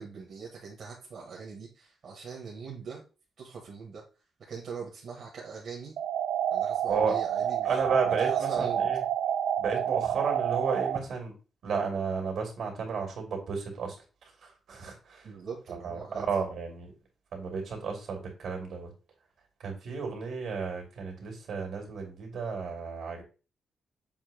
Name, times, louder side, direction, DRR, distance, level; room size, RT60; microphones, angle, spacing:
voice 1, 0.0-3.0 3.4-4.0 4.5-5.9 6.5-7.8 8.2-8.9 15.2-16.3, right 5 dB, 55° right, -2 dB, 1.5 m, -41 dB
sound 1, 6.0-11.0, right 9 dB, 85° right, 0.4 m, -29 dB
voice 2, 7.6-9.0 9.6-11.3 11.6-14.0 14.2-15.3 15.7-16.9 17.3-18.9 19.6-23.2, right 5 dB, 70° right, 2 dB, 2.5 m, -33 dB
7.2 x 2.8 x 5.0 m, 0.34 s
wide cardioid pair, 175°, 0 cm